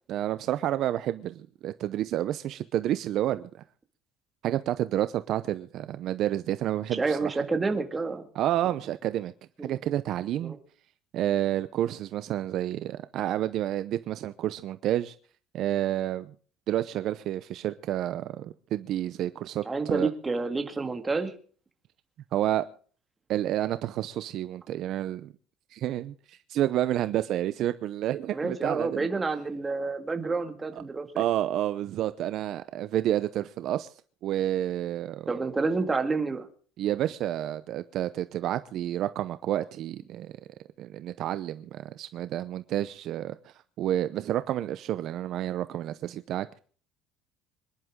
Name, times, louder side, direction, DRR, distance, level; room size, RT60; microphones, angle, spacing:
voice 1, 0.1-3.5 4.4-7.3 8.3-9.3 9.6-10.5 11.1-15.1 15.5-16.3 16.7-20.1 22.3-22.6 23.3-25.3 25.7-29.1 31.2-33.9 34.2-35.3 36.8-40.3 40.8-46.5, right 12 dB, 45° right, 0.7 m, -29 dB
voice 2, 6.9-8.2 9.6-9.7 10.4-10.6 19.6-21.3 28.3-31.2 35.3-36.5, right 4 dB, 15° right, 2.0 m, -29 dB
26.0 x 11.0 x 3.7 m
cardioid pair, 165°, 0 cm